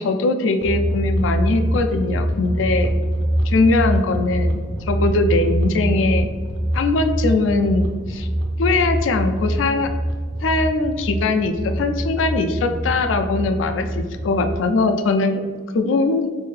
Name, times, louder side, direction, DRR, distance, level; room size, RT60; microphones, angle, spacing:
voice 1, 0.0-2.9 3.5-6.3 6.7-8.3 8.6-9.9 10.4-15.4 15.7-16.3, left 3 dB, 80° left, 6 dB, 0.4 m, -21 dB
sound 1, 0.6-14.6, right 1 dB, 70° right, 0.5 m, -24 dB
3.2 x 2.6 x 3.2 m, 1.5 s
head